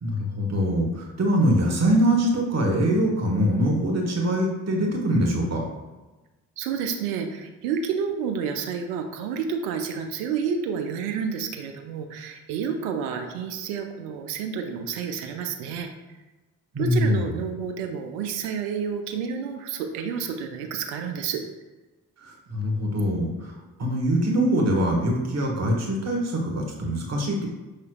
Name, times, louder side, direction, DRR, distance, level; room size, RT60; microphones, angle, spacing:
voice 1, 0.0-5.6 16.7-17.2 22.5-23.5 23.8-27.5, equal, 40° right, 0 dB, 1.3 m, -23 dB
voice 2, 6.6-15.9 16.8-21.4, right 6 dB, 75° right, 5 dB, 0.5 m, -30 dB
5.7 x 3.2 x 2.3 m, 1.1 s
hypercardioid pair, 40°, 42 cm